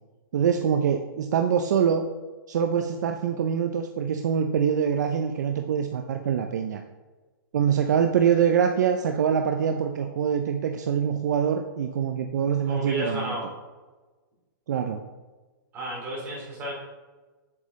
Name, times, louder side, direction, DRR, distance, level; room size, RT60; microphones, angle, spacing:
voice 1, 0.3-2.0 2.5-6.8 7.5-13.4 14.7-15.0, right 7 dB, 55° right, 5 dB, 0.4 m, -24 dB
voice 2, 12.6-13.5 15.7-16.7, equal, 15° right, -6 dB, 2.4 m, -32 dB
7.6 x 7.3 x 3.1 m, 1.3 s
hypercardioid pair, 175°, 11 cm